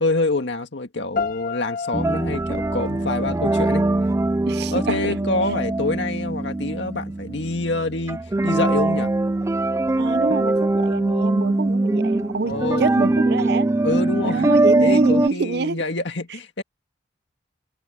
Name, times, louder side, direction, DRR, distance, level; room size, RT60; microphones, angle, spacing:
voice 1, 0.0-3.9 4.7-9.1 12.4-12.9 13.8-14.5 14.8-16.6, left 2 dB, 65° left, 1.9 m, -26 dB
sound 1, 1.2-4.1, left 5 dB, 45° left, 1.5 m, -33 dB
sound 2, 1.9-15.3, right 2 dB, 15° right, 0.3 m, -22 dB
Boom, 2.2-6.6, equal, 15° left, 7.1 m, -50 dB
voice 2, 4.5-5.3 10.0-13.7 14.2-15.8, right 4 dB, 60° right, 0.6 m, -26 dB
head